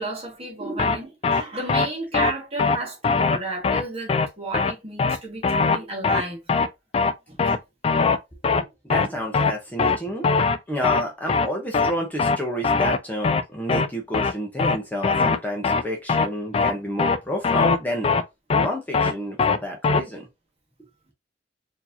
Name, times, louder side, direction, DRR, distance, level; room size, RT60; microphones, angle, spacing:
voice 1, 0.0-6.4 7.3-7.6, right 2 dB, 35° right, 1.6 m, -32 dB
sound 1, 0.8-1.0 1.2-1.4 1.7-1.9 2.1-2.3 2.6-2.8 3.0-3.4 3.6-3.8 4.1-4.3 4.5-4.7 5.0-5.2 5.4-5.8 6.0-6.2 6.5-6.7 6.9-7.1 7.4-7.6 7.8-8.2 8.4-8.6 8.9-9.1 9.3-9.5 9.8-10.0 10.2-10.6 10.8-11.0 11.3-11.5 11.7-11.9 12.2-12.4 12.6-13.0 13.2-13.4 13.7-13.9 14.1-14.3 14.6-14.8 15.0-15.4 15.6-15.8 16.1-16.3 16.5-16.7 17.0-17.2 17.4-17.8 18.0-18.2 18.5-18.7 18.9-19.1 19.4-19.6 19.8-20.0, left 4 dB, 35° left, 0.3 m, -20 dB
voice 2, 8.4-18.1 18.5-20.3, equal, 10° left, 0.8 m, -30 dB
4.5 x 2.8 x 2.7 m
head